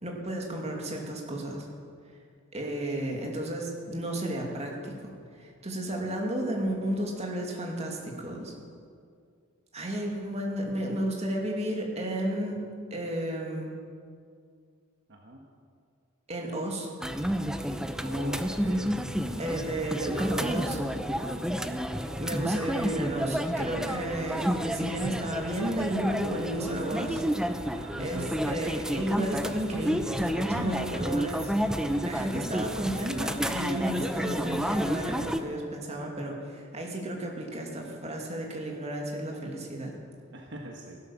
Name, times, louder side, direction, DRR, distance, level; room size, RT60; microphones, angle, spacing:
voice 1, 0.0-1.7 2.5-5.1 5.4-8.5 9.7-12.6 12.9-13.7 16.3-16.9 19.4-20.8 22.2-27.2 27.6-40.0, right 1 dB, 30° right, 0 dB, 2.5 m, -33 dB
voice 2, 15.1-15.4 18.0-18.9 27.8-28.5 40.3-41.0, right 1 dB, 60° right, 1 dB, 1.5 m, -42 dB
sound 1, 17.0-35.4, equal, 5° right, 0.6 m, -30 dB
16.0 x 12.0 x 7.2 m, 2.3 s
head